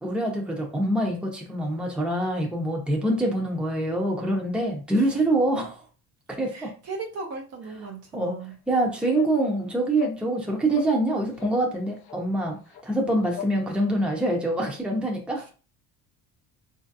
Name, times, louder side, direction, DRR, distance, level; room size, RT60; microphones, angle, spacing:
voice 1, 0.0-5.8 6.4-6.7 8.1-8.3 8.7-12.6 12.8-15.4, right 1 dB, 5° right, 0 dB, 0.8 m, -25 dB
voice 2, 6.5-8.6 15.4-15.5, right 4 dB, 40° right, 1 dB, 0.7 m, -37 dB
sound 1, 8.5-8.6 9.1-9.3 9.9-10.2 10.7-11.0 11.3-11.6 12.0-12.2 12.7-12.8 13.3-13.5, left 10 dB, 70° left, 0.7 m, -34 dB
4.3 x 2.7 x 2.5 m, 0.36 s
cardioid pair, 125°, 38 cm